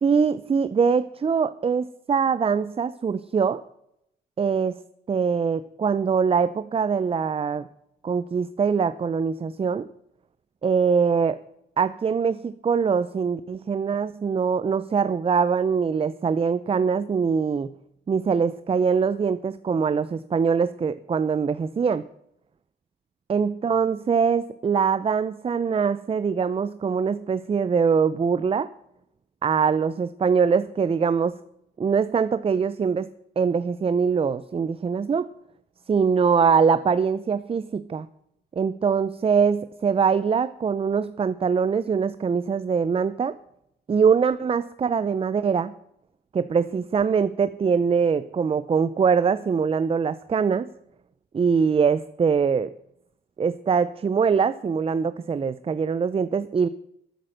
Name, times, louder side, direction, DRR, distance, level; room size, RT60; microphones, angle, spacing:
voice 1, 0.0-3.6 4.4-4.8 5.1-7.7 8.0-9.9 10.6-11.4 11.8-17.7 18.1-22.0 23.3-28.7 29.4-31.4 31.8-33.1 33.4-35.3 35.9-38.1 38.6-43.4 43.9-45.7 46.3-50.7 51.3-52.7 53.4-56.7, right 6 dB, 30° right, 14 dB, 0.6 m, -23 dB
13.5 x 8.7 x 6.5 m, 0.78 s
cardioid pair, 90°, 20 cm